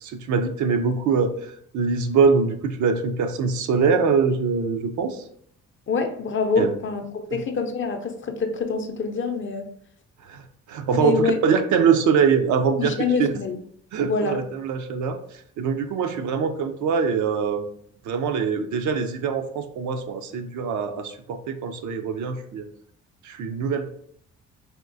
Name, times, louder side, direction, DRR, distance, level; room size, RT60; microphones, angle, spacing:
voice 1, 0.0-5.2 6.6-6.7 7.3-7.4 10.3-10.4 10.7-13.3 13.9-15.2 15.6-17.6 18.1-22.7 23.2-23.9, right 5 dB, 75° right, 7 dB, 0.5 m, -23 dB
voice 2, 5.9-9.7 10.9-11.4 12.8-13.6 14.0-14.4, left 5 dB, 40° left, 5 dB, 0.5 m, -25 dB
3.5 x 2.3 x 2.5 m, 0.65 s
cardioid pair, 90°, 30 cm